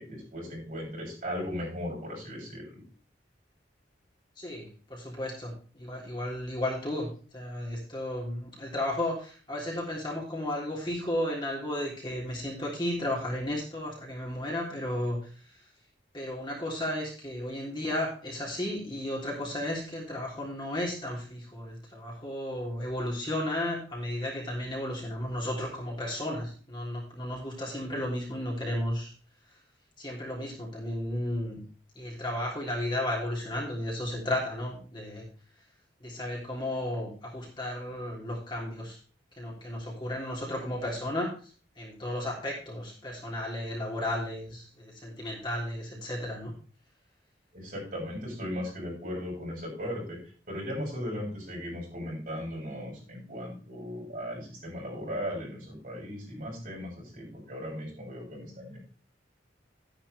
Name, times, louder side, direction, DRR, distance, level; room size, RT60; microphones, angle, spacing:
voice 1, 0.0-2.8 47.5-50.2 50.5-58.8, equal, 45° right, -4 dB, 7.4 m, -37 dB
voice 2, 4.4-15.2 16.1-29.1 30.0-31.6 31.9-35.2 36.0-39.0 39.4-41.5 41.8-46.5, left 1 dB, 25° left, -3 dB, 3.3 m, -34 dB
12.0 x 10.5 x 3.4 m, 0.38 s
head